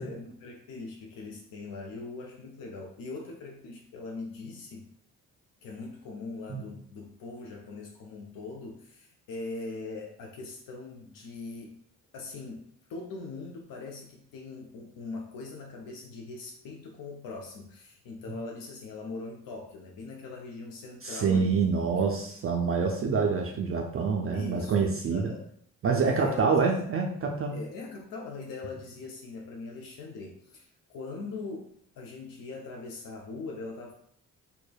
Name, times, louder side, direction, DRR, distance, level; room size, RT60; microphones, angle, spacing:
voice 1, 0.0-4.9 5.6-11.8 12.1-22.0 24.3-25.5 26.0-26.7 27.5-34.0, left 3 dB, 60° left, 0 dB, 0.5 m, -41 dB
voice 2, 21.0-25.3 25.8-27.5, right 5 dB, 35° right, 1 dB, 0.4 m, -26 dB
3.1 x 2.1 x 2.2 m, 0.65 s
hypercardioid pair, 45°, 40 cm